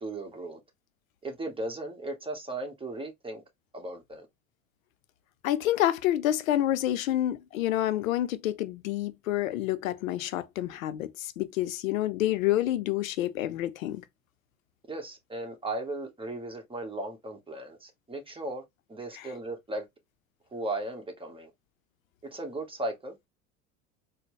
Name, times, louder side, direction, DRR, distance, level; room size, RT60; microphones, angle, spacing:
voice 1, 0.0-0.6 1.2-3.4 3.7-4.3 14.9-18.6 18.9-19.9 20.5-21.5 22.3-23.2, right 2 dB, 15° right, 1.2 m, -36 dB
voice 2, 5.4-14.0, left 13 dB, 85° left, 0.6 m, -28 dB
4.2 x 2.1 x 3.1 m
hypercardioid pair, 85°, 39 cm